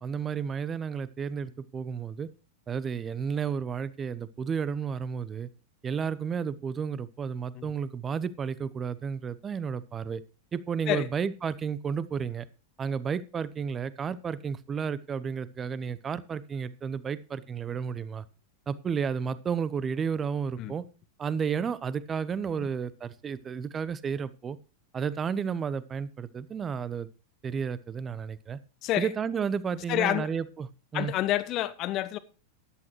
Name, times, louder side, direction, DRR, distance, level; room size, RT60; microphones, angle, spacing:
voice 1, 0.0-2.3 2.7-5.5 5.8-10.2 10.5-12.4 12.8-18.2 18.7-20.8 21.2-24.6 24.9-27.1 27.4-28.6 29.0-31.1, right 6 dB, 20° right, 0.8 m, -32 dB
voice 2, 29.9-30.3 30.9-32.2, left 14 dB, 35° left, 1.0 m, -28 dB
14.0 x 11.0 x 3.1 m
figure-of-eight pair, 90°, 0 cm